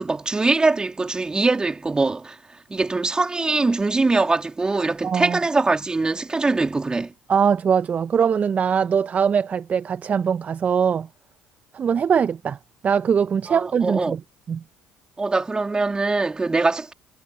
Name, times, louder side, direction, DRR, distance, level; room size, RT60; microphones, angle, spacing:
voice 1, 0.0-7.1 13.5-14.2 15.2-16.9, right 3 dB, 20° right, 3.2 m, -22 dB
voice 2, 5.0-5.4 7.3-11.1 11.7-12.6 12.8-14.2 14.5-14.6, right 7 dB, 40° right, 0.8 m, -21 dB
hypercardioid pair, 65°, 4 cm